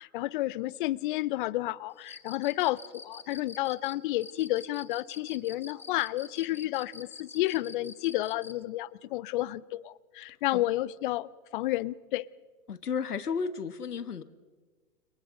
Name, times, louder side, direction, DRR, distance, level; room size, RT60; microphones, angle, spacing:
voice 1, 0.0-12.3, left 16 dB, 35° left, 0.7 m, -31 dB
Cricket, 2.0-8.6, left 3 dB, 5° left, 0.9 m, -46 dB
voice 2, 12.7-14.2, left 6 dB, 80° left, 1.4 m, -33 dB
29.5 x 28.0 x 3.8 m
hypercardioid pair, 120°, 45 cm